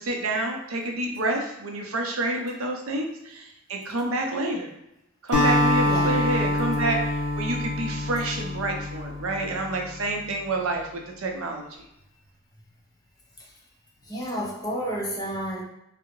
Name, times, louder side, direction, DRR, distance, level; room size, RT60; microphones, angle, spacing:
voice 1, 0.0-4.7 5.2-7.1 7.4-11.7, right 2 dB, 75° right, 2 dB, 0.5 m, -28 dB
Acoustic guitar, 5.3-9.8, left 1 dB, 50° left, 0.9 m, -25 dB
voice 2, 14.0-15.6, equal, 15° left, -3 dB, 0.5 m, -31 dB
3.5 x 2.0 x 2.9 m, 0.84 s
head